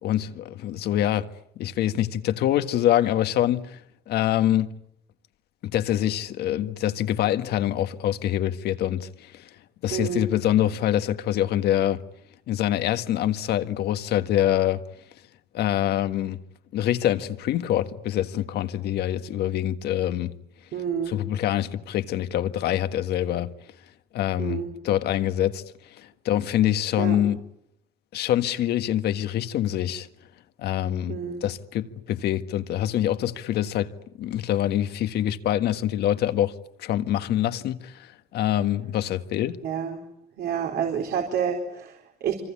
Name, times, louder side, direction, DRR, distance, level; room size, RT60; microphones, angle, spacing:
voice 1, 0.0-1.3 1.5-3.8 4.1-4.7 5.6-9.5 9.8-12.0 12.5-14.8 15.5-16.4 16.7-20.3 21.1-23.5 24.1-25.6 26.0-27.4 28.1-30.1 30.6-33.9 34.2-36.5 36.8-39.6, left 12 dB, 75° left, 1.7 m, -25 dB
voice 2, 9.9-10.3 20.7-21.2 24.4-24.7 27.0-27.2 31.1-31.4 39.6-40.0 40.4-42.3, right 8 dB, 70° right, 4.2 m, -29 dB
26.0 x 26.0 x 8.6 m
cardioid pair, 110°, 17 cm